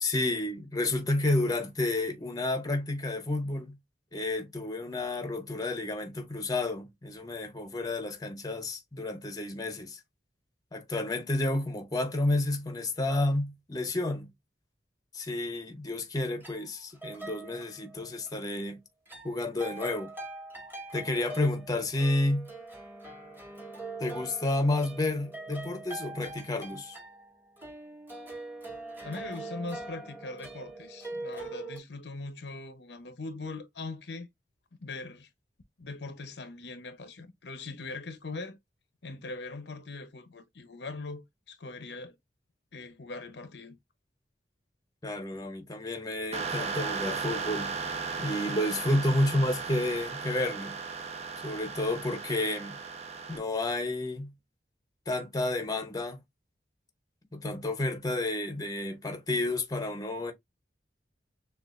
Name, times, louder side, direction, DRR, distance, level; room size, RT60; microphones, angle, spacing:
voice 1, 0.0-3.8 4.1-10.0 10.7-14.3 15.1-18.8 19.2-20.1 20.9-22.5 24.0-27.0 45.0-47.7 48.2-50.8 51.4-52.8 53.3-54.3 55.1-56.2 57.3-60.3, left 2 dB, 20° left, 0.8 m, -30 dB
sound 1, 16.4-18.3 19.1-31.8, right 2 dB, 15° right, 1.5 m, -43 dB
voice 2, 29.0-34.3 34.8-35.3 35.8-38.6 39.0-42.1 42.7-43.8, left 3 dB, 75° left, 0.8 m, -41 dB
sound 2, 46.3-53.4, right 5 dB, 40° right, 0.8 m, -36 dB
6.4 x 2.5 x 2.4 m
head